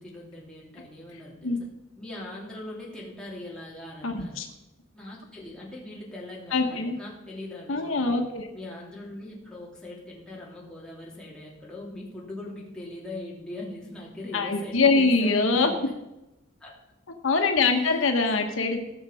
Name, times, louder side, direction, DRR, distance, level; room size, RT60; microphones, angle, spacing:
voice 1, 0.0-1.7 2.0-4.4 4.9-8.2 8.5-15.8 16.6-16.7 17.8-18.1 18.4-18.8, left 1 dB, 5° left, -5 dB, 2.8 m, -41 dB
voice 2, 4.0-4.5 6.5-7.0 7.7-8.5 14.3-15.7 17.2-18.8, left 3 dB, 70° left, 4 dB, 1.2 m, -23 dB
16.5 x 6.3 x 5.6 m, 0.95 s
head